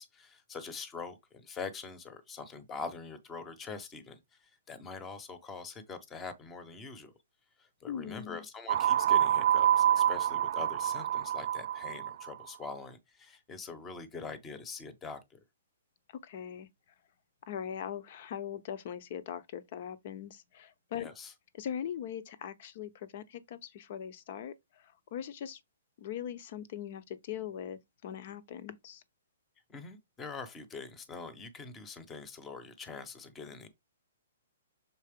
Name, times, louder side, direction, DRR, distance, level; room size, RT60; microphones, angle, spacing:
voice 1, 0.0-7.1 7.6-15.4 21.0-21.3 29.7-33.7, left 4 dB, 15° left, 1.1 m, -44 dB
voice 2, 7.9-8.4 16.2-16.7 17.5-21.1 21.5-25.6 26.0-29.0, left 9 dB, 45° left, 0.9 m, -41 dB
sound 1, 8.7-12.3, right 11 dB, 50° right, 0.3 m, -27 dB
6.8 x 4.3 x 3.7 m
hypercardioid pair, 165°, 0 cm